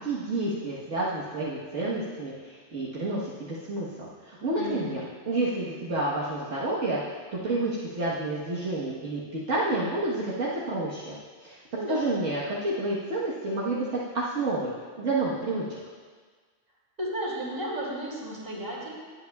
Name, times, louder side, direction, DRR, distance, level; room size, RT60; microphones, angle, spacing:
voice 1, 0.0-5.0 5.2-11.2 11.4-11.6 11.9-13.9 14.1-15.8, right 2 dB, 70° right, -8 dB, 1.7 m, -29 dB
voice 2, 4.6-5.0 11.8-12.1 17.0-18.9, right 1 dB, 45° right, -6 dB, 3.0 m, -33 dB
19.5 x 8.4 x 2.3 m, 1.5 s
omnidirectional pair, 1.3 m